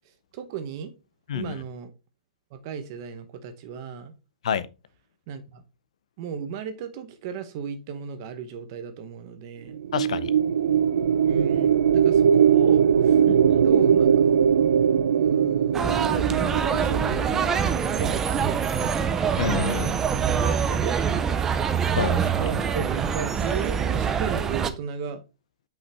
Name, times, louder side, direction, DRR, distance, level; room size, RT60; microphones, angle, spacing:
voice 1, 0.3-0.9 1.3-1.9 2.5-4.1 5.3-5.6 6.2-9.8 11.2-13.2 13.6-14.4 15.1-15.9 16.7-17.2 17.9-19.0 20.5-21.0 22.4-25.2, right 7 dB, 30° right, 0.9 m, -34 dB
sound 1, 9.7-18.1, right 8 dB, 75° right, 0.4 m, -20 dB
voice 2, 9.9-10.3 13.3-13.6 19.4-19.9 22.0-22.4, left 8 dB, 60° left, 0.6 m, -28 dB
sound 2, 15.7-24.7, right 7 dB, 10° right, 0.3 m, -25 dB
5.6 x 5.6 x 3.4 m
hypercardioid pair, 170°, 4 cm